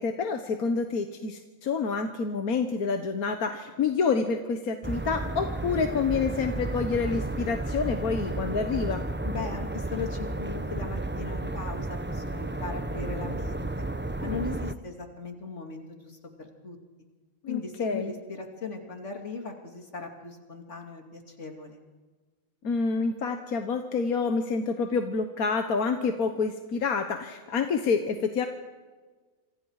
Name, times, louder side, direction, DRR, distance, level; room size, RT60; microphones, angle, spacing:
voice 1, 0.0-9.0 17.4-18.1 22.6-28.5, left 5 dB, 80° left, 6 dB, 1.7 m, -28 dB
sound 1, 4.8-14.7, right 2 dB, 15° right, 0.4 m, -32 dB
voice 2, 9.2-13.8 14.2-16.8 17.5-21.8, left 4 dB, 55° left, 3 dB, 3.1 m, -38 dB
26.5 x 26.0 x 4.9 m, 1.3 s
omnidirectional pair, 1.5 m